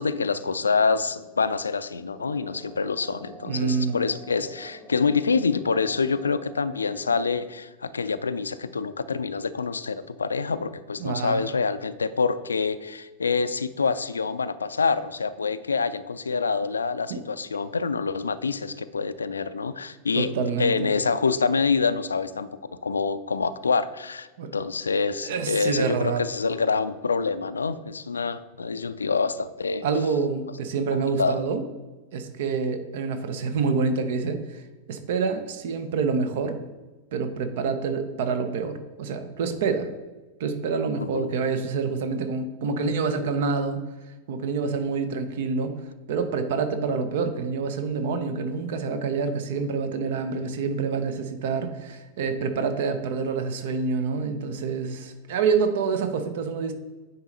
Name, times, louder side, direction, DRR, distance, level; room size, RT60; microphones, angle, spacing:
voice 1, 0.0-20.3 20.6-22.5 22.8-24.3 24.5-29.8 31.2-31.4 41.0-41.3, left 5 dB, 75° left, 13 dB, 0.4 m, -26 dB
sound 1, 2.1-7.3, right 1 dB, 10° right, 1.3 m, -47 dB
voice 2, 3.4-4.0 11.0-11.5 17.1-17.2 20.2-20.9 24.4-24.5 25.2-26.2 29.8-31.6 32.1-34.6 34.9-36.6 37.1-39.9 40.4-43.8 44.3-45.8 46.1-56.7, right 5 dB, 55° right, 8 dB, 0.7 m, -27 dB
9.6 x 4.0 x 4.1 m, 1.2 s
figure-of-eight pair, 90°, 0 cm